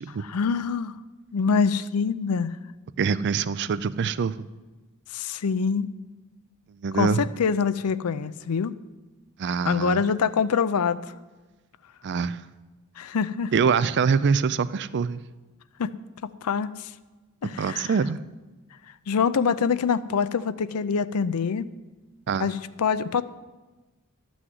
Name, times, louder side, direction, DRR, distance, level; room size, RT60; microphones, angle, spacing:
voice 1, 0.1-1.0 1.3-2.6 5.1-5.9 6.9-8.7 9.6-11.0 13.0-13.5 15.8-15.9 16.4-16.9 17.4-18.0 19.1-21.7 22.4-23.2, left 6 dB, 90° left, 14 dB, 0.5 m, -25 dB
voice 2, 3.0-4.5 6.8-7.2 9.4-10.0 12.0-12.4 13.5-15.2 17.6-18.2 22.3-22.5, right 5 dB, 50° right, 17 dB, 0.4 m, -24 dB
12.0 x 6.2 x 7.8 m, 1.2 s
head